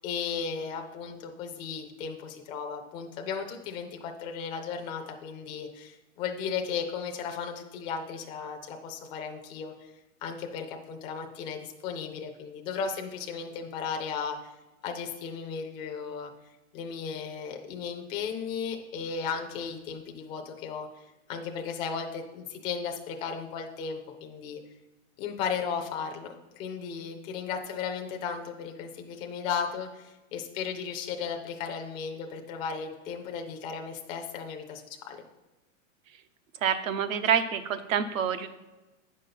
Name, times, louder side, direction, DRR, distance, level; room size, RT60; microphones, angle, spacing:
voice 1, 0.0-9.9 10.2-14.4 14.8-16.3 16.7-20.9 21.3-24.6 25.2-26.3 26.5-35.2, left 6 dB, 15° left, 3 dB, 0.3 m, -35 dB
voice 2, 36.6-38.5, right 8 dB, 80° right, 10 dB, 1.0 m, -27 dB
8.4 x 5.3 x 5.8 m, 1.1 s
supercardioid pair, 150°, 39 cm